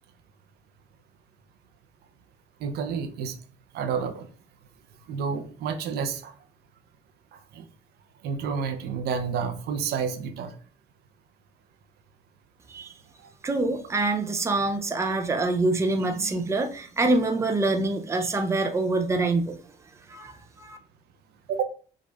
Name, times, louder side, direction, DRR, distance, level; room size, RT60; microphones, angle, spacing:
voice 1, 2.6-3.4 3.7-4.3 5.1-6.3 7.5-7.6 8.2-10.5 13.2-13.3 21.5-21.6, right 6 dB, 70° right, 0.7 m, -29 dB
voice 2, 13.4-19.6 20.1-20.8, right 2 dB, 15° right, 0.6 m, -25 dB
5.3 x 2.5 x 3.4 m
cardioid pair, 110°, 17 cm